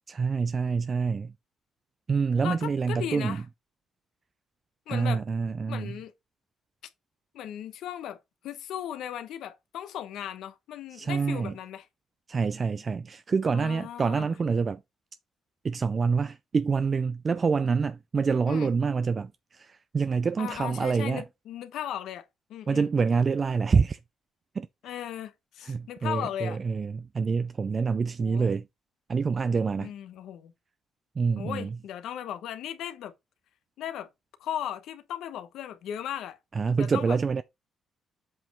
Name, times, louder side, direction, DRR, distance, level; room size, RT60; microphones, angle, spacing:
voice 1, 0.1-1.3 2.1-3.4 4.9-6.0 10.9-11.5 12.3-14.8 15.6-21.2 22.7-24.0 24.5-25.0 25.6-28.7 29.1-29.9 31.2-31.8 36.5-37.4, right 5 dB, 40° right, 0.3 m, -27 dB
voice 2, 2.4-3.4 4.9-5.2 5.7-6.1 7.3-8.2 8.4-11.9 13.5-14.3 18.5-18.7 20.4-22.2 22.5-22.9 24.8-26.6 28.2-28.5 29.8-30.5 31.3-33.1 33.8-34.1 34.4-36.4 36.7-37.2, left 10 dB, 80° left, 1.0 m, -37 dB
7.7 x 3.1 x 5.3 m
cardioid pair, 90°, 0 cm